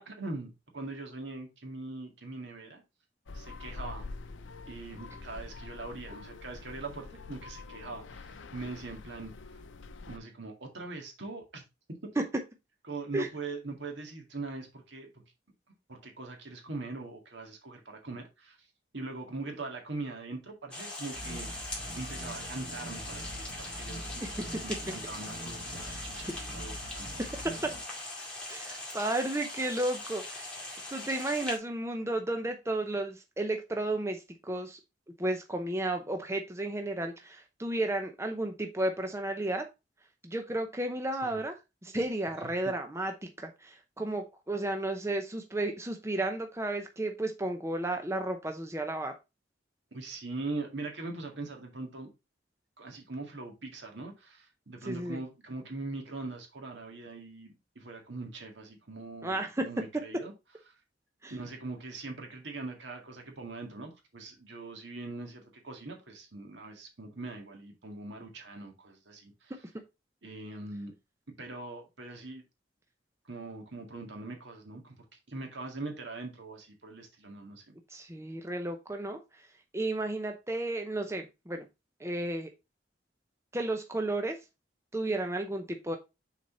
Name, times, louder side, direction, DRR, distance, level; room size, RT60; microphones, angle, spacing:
voice 1, 0.0-2.8 3.3-4.1 4.7-9.3 10.1-11.6 12.9-15.2 15.9-18.7 18.9-27.1 41.2-41.4 49.9-52.1 52.8-60.3 60.7-60.8 61.3-69.6 70.2-70.9 71.4-72.4 73.3-77.8, right 3 dB, 70° right, 1.9 m, -42 dB
sound 1, 3.3-10.2, left 3 dB, 90° left, 0.6 m, -45 dB
sound 2, 20.7-31.6, left 2 dB, 5° left, 2.2 m, -41 dB
sound 3, 21.1-27.8, right 1 dB, 45° right, 1.5 m, -44 dB
voice 2, 27.2-27.7 28.5-34.8 35.2-39.7 40.2-41.5 41.8-49.1 54.8-55.2 59.2-59.6 61.2-61.3 77.9-79.2 79.7-81.6 82.0-82.5 83.5-84.4 84.9-86.0, right 1 dB, 15° right, 0.7 m, -33 dB
6.3 x 4.2 x 4.1 m
head